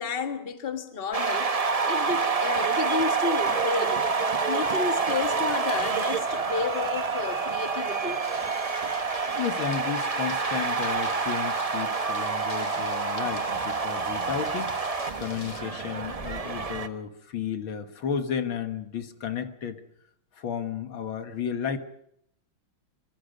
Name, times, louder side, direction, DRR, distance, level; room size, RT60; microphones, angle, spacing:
voice 1, 0.0-1.5 1.8-4.0 4.5-8.2, left 4 dB, 30° left, 1.7 m, -31 dB
sound 1, 1.1-16.9, right 4 dB, 40° right, 0.5 m, -27 dB
sound 2, 8.2-15.6, left 6 dB, 90° left, 2.7 m, -46 dB
voice 2, 9.4-14.8 15.2-19.8 20.3-21.8, left 7 dB, 70° left, 2.2 m, -33 dB
25.5 x 24.0 x 5.2 m
omnidirectional pair, 2.3 m